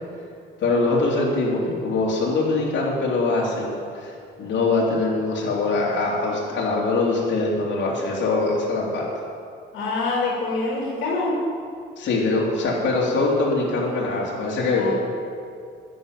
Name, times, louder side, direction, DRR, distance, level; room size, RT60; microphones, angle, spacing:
voice 1, 0.6-4.1 4.4-9.0 12.0-14.9, left 3 dB, 65° left, -3 dB, 2.9 m, -23 dB
voice 2, 9.7-11.4 14.7-14.9, left 3 dB, 80° left, -4 dB, 2.6 m, -25 dB
11.0 x 7.0 x 9.3 m, 2.3 s
cardioid pair, 90°, 20 cm